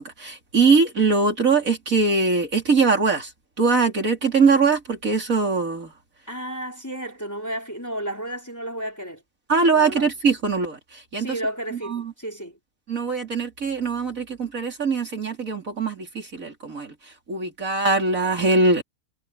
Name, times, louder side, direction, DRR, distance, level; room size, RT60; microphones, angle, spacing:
voice 1, 0.0-3.3 3.6-5.9 9.5-10.8 11.1-11.3 11.9-12.1 12.9-16.9 17.3-18.8, right 4 dB, 55° right, 3.9 m, -21 dB
voice 2, 6.3-9.2 9.7-10.1 11.2-12.6, right 1 dB, 10° left, 3.6 m, -32 dB
omnidirectional pair, 1.7 m